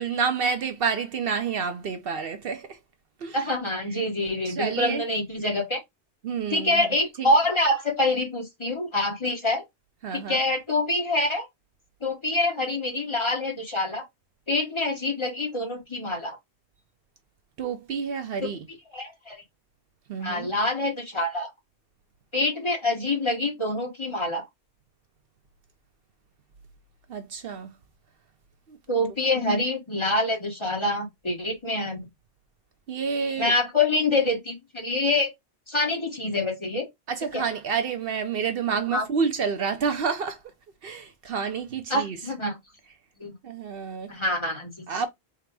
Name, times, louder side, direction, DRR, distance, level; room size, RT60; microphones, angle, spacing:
voice 1, 0.0-2.8 3.2-3.4 4.5-5.0 6.2-6.9 7.2-7.3 10.0-10.4 17.6-18.6 20.1-20.5 27.1-27.7 28.7-28.8 32.9-33.5 37.1-40.4 40.8-42.2 43.4-44.1 44.9-45.1, right 6 dB, 65° right, 0.8 m, -29 dB
voice 2, 3.3-5.8 6.5-9.6 10.1-11.5 12.0-14.0 14.5-16.4 18.9-19.4 20.2-21.5 22.3-24.4 28.9-32.1 33.4-35.3 35.7-36.9 37.3-37.4 38.9-39.0 41.9-42.6 43.2-43.3 44.1-44.7, left 2 dB, 25° left, 1.2 m, -26 dB
3.7 x 2.2 x 4.5 m
omnidirectional pair, 1.1 m